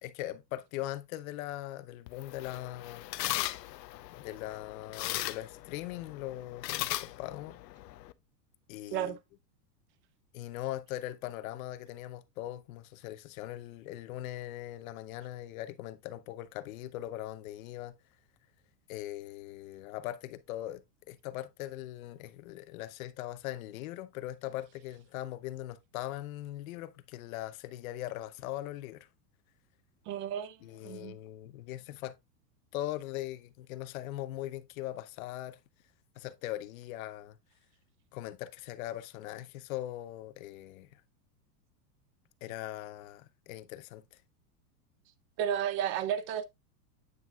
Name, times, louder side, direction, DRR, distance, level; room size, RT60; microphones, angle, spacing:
voice 1, 0.0-3.1 4.2-7.6 8.7-9.2 10.3-18.0 18.9-29.1 30.6-32.2 32.7-35.6 36.2-37.4 38.1-41.0 42.4-44.2, left 14 dB, 55° left, 0.9 m, -40 dB
sound 1, 2.1-8.1, left 16 dB, 90° left, 0.7 m, -38 dB
voice 2, 30.1-30.6 30.8-31.2 45.4-46.4, right 9 dB, 25° right, 0.5 m, -32 dB
9.3 x 5.9 x 2.3 m
supercardioid pair, 150°, 49 cm